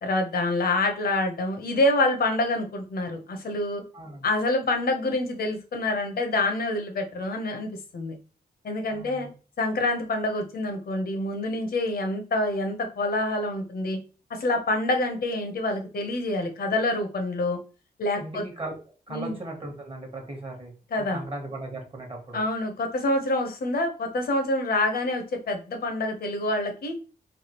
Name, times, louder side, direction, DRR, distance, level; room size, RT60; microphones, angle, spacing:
voice 1, 0.0-3.8 4.2-8.1 8.6-9.3 9.6-14.0 14.3-17.6 18.0-18.4 19.1-19.3 20.9-21.2 22.3-27.0, left 2 dB, 60° left, 4 dB, 0.8 m, -27 dB
voice 2, 3.9-4.3 8.9-9.3 18.1-18.8 19.1-20.7 21.0-22.4, right 1 dB, 30° right, 2 dB, 1.0 m, -37 dB
3.3 x 2.3 x 2.9 m, 0.35 s
cardioid pair, 95°, 18 cm